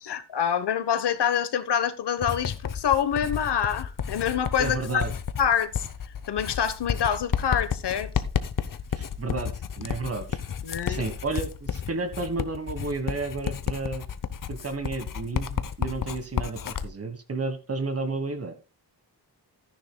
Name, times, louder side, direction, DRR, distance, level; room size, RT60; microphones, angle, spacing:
voice 1, 0.0-5.0 5.4-5.9 6.3-8.1 10.6-11.0, left 8 dB, 70° left, 1.1 m, -26 dB
Writing, 2.2-16.9, left 7 dB, 50° left, 0.8 m, -32 dB
voice 2, 4.6-5.1 8.9-10.4 10.9-14.0 14.5-18.5, right 3 dB, 35° right, 1.5 m, -32 dB
14.5 x 10.0 x 2.3 m
wide cardioid pair, 170°, 42 cm